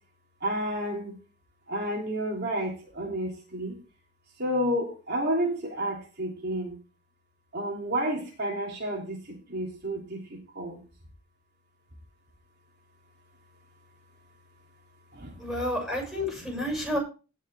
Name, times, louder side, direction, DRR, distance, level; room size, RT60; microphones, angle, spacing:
voice 1, 0.4-1.2 1.7-3.8 4.4-6.8 7.5-10.8 15.1-15.5 16.6-16.7, right 1 dB, 50° right, -1 dB, 3.1 m, -31 dB
voice 2, 15.4-17.0, left 1 dB, ahead, 0 dB, 6.7 m, -30 dB
17.5 x 6.4 x 3.6 m, 0.33 s
head